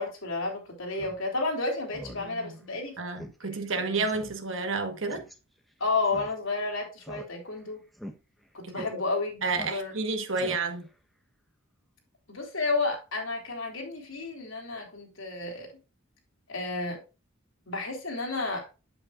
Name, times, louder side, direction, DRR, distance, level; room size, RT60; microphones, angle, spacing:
voice 1, 0.0-2.9 3.7-4.1 5.8-7.8 8.5-9.4 9.7-9.9 12.3-15.7 16.5-17.0 17.7-18.7, left 3 dB, 75° left, 3.5 m, -31 dB
Speech synthesizer, 0.9-1.2 1.5-1.6 1.9-2.3 2.6-2.7 3.2-3.3 3.6-3.7 4.1-4.3 5.1-5.3 6.0-6.6 7.0-7.6 7.9-8.1 8.7-8.9 9.5-10.0 10.3-10.9, equal, ahead, 1.0 m, -42 dB
voice 2, 2.2-2.5 3.0-5.3 8.6-8.8 9.4-10.9, right 3 dB, 65° right, 1.3 m, -31 dB
8.4 x 7.9 x 2.5 m
head